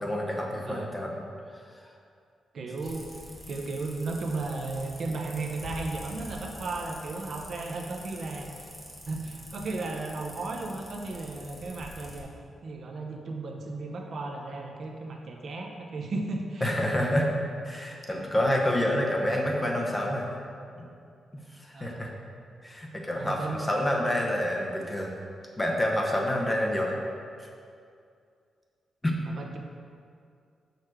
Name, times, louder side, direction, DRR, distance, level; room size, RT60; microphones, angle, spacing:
voice 1, 0.0-1.1 16.6-17.3 17.6-20.4 20.8-20.9 21.6-22.1 22.6-25.1 25.6-27.0 29.0-29.1, left 1 dB, 10° left, -1 dB, 0.9 m, -28 dB
voice 2, 2.5-3.0 3.5-8.7 9.1-12.3 12.6-16.7 21.7-22.0 23.1-23.7 29.2-29.6, right 3 dB, 55° right, 2 dB, 0.8 m, -35 dB
sound 1, 2.8-12.2, equal, 5° right, 1.4 m, -45 dB
6.6 x 6.1 x 4.9 m, 2.3 s
wide cardioid pair, 145°, 0 cm